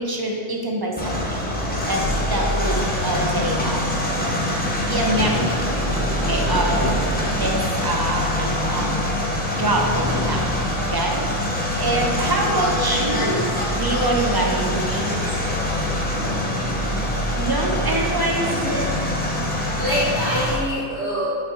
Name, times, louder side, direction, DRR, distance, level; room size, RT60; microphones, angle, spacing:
voice 1, 0.0-1.4 1.9-2.0 2.3-4.0 4.8-5.6 6.2-6.9 7.2-9.1 9.6-10.5 10.8-11.3 11.8-15.2 17.4-18.9, right 1 dB, 35° right, 0 dB, 0.4 m, -25 dB
sound 1, 1.0-20.6, left 1 dB, 10° left, 0.6 m, -24 dB
voice 2, 6.2-6.6 11.9-12.2 16.1-16.4 18.3-18.7 19.5-21.3, equal, 65° right, -13 dB, 1.8 m, -27 dB
5.5 x 3.6 x 4.9 m, 2.2 s
omnidirectional pair, 1.3 m